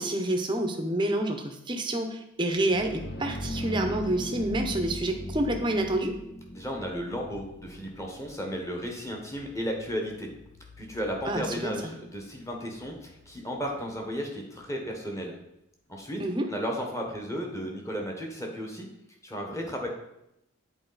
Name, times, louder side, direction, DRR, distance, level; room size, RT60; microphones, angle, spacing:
voice 1, 0.0-6.2 11.3-11.7 16.2-16.5, right 1 dB, 20° right, 4 dB, 0.7 m, -28 dB
Hell's Foundations C, 2.5-14.1, left 1 dB, 50° left, 0.7 m, -40 dB
voice 2, 6.5-10.3 10.8-15.3 15.9-16.2 16.5-18.9 19.2-19.9, equal, 15° left, 1 dB, 1.1 m, -34 dB
8.1 x 4.2 x 4.0 m, 0.83 s
head